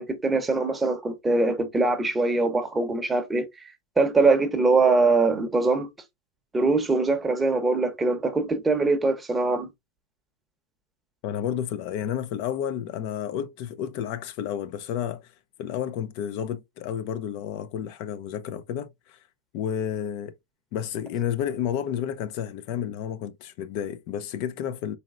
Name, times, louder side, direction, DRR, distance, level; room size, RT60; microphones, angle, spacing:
voice 1, 0.0-3.5 4.0-5.9 6.5-9.7, right 3 dB, 10° right, 0.7 m, -22 dB
voice 2, 11.2-15.3 15.6-19.2 19.5-20.3 20.7-25.0, left 9 dB, 55° left, 0.4 m, -31 dB
4.1 x 3.0 x 2.4 m
supercardioid pair, 145°, 0 cm